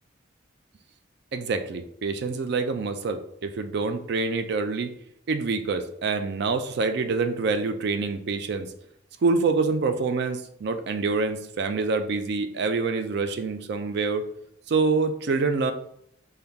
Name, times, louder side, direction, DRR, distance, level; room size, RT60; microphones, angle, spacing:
voice 1, 1.3-4.9 5.3-8.7 9.2-14.2 14.7-15.7, right 4 dB, 60° right, 8 dB, 0.4 m, -26 dB
5.5 x 2.3 x 3.4 m, 0.72 s
head